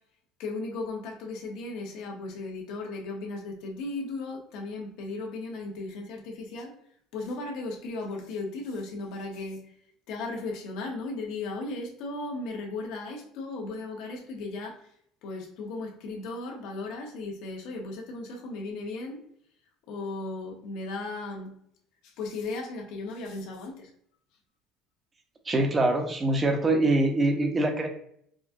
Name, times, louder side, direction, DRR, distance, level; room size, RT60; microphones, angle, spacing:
voice 1, 0.4-6.7 7.1-9.6 10.1-14.9 15.2-19.2 19.9-21.5 22.0-23.9, left 3 dB, 70° left, 1 dB, 1.0 m, -36 dB
voice 2, 25.5-27.9, right 2 dB, 25° right, 3 dB, 0.8 m, -24 dB
5.0 x 2.3 x 2.6 m, 0.68 s
supercardioid pair, 100°, 0 cm